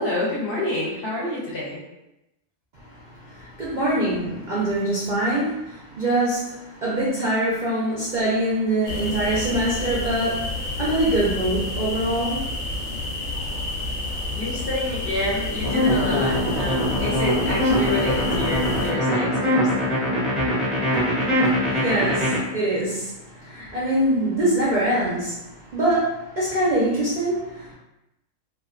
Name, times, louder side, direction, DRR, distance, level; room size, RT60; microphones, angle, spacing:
voice 1, 0.0-1.8 14.4-19.7, left 1 dB, 55° left, -6 dB, 0.7 m, -28 dB
voice 2, 3.3-12.4 21.2-25.4 25.7-27.7, right 1 dB, 55° right, -8 dB, 0.5 m, -24 dB
sound 1, 8.9-18.9, left 2 dB, 90° left, 1.0 m, -29 dB
sound 2, 15.6-22.4, left 1 dB, ahead, 0.4 m, -22 dB
2.3 x 2.1 x 2.4 m, 0.91 s
omnidirectional pair, 1.4 m